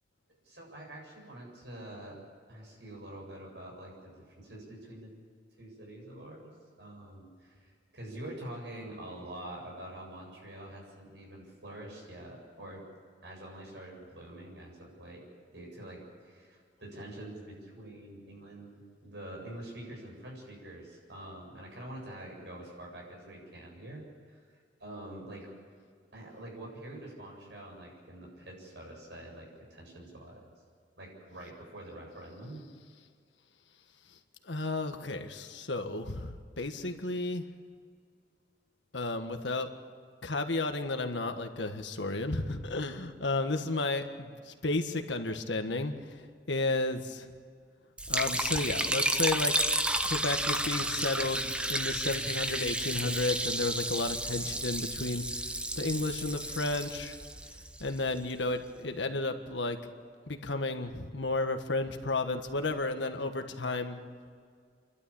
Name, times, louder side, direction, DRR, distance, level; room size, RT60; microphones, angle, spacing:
voice 1, 0.4-2.2 2.5-5.1 5.6-6.5 6.8-12.8 13.2-15.2 15.5-25.5 26.1-30.5 31.0-32.7, right 1 dB, 70° right, -1 dB, 7.7 m, -46 dB
voice 2, 34.5-37.4 38.9-39.7 40.2-47.3 48.1-49.5 50.0-55.4 55.8-57.2 57.8-59.8 60.3-64.0, left 2 dB, 85° left, 6 dB, 1.6 m, -32 dB
Liquid, 48.0-58.2, right 1 dB, 5° right, 0.7 m, -32 dB
29.0 x 12.0 x 8.9 m, 2.1 s
head